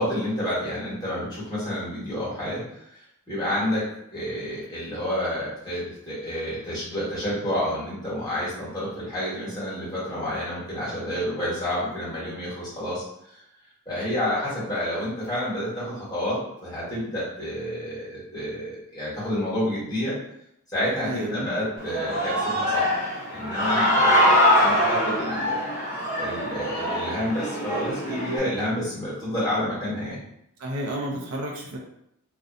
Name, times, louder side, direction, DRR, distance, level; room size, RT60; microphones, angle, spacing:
voice 1, 0.0-3.0 3.3-3.8 4.1-13.4 13.8-20.1 20.7-22.9 23.3-25.6 26.2-30.2, equal, 20° left, -10 dB, 1.2 m, -29 dB
voice 2, 21.0-21.5 30.6-31.8, right 1 dB, 70° right, 0 dB, 0.4 m, -31 dB
Human voice / Cheering, 21.8-28.4, equal, 35° left, 0.6 m, -23 dB
2.5 x 2.1 x 2.4 m, 0.78 s
head